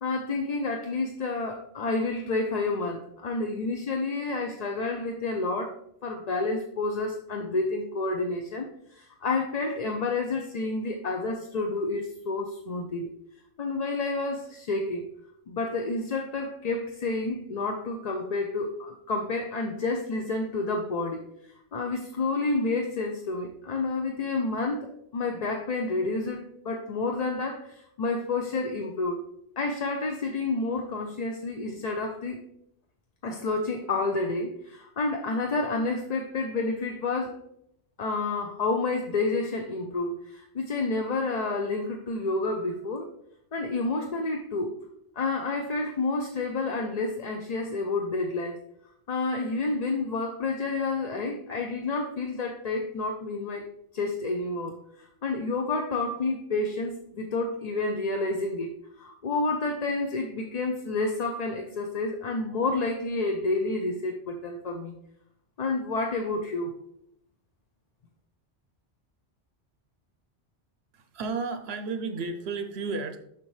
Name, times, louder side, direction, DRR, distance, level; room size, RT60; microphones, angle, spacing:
voice 1, 0.0-5.7 6.0-13.1 13.6-15.1 15.5-21.2 21.7-29.2 29.6-32.4 33.2-37.4 38.0-43.1 43.5-44.7 45.2-48.6 49.1-53.6 53.9-58.7 59.0-64.9 65.6-66.7, left 3 dB, 45° left, 3 dB, 0.6 m, -29 dB
voice 2, 70.9-73.2, right 4 dB, 80° right, 8 dB, 0.8 m, -32 dB
6.8 x 5.5 x 3.2 m, 0.73 s
omnidirectional pair, 1.1 m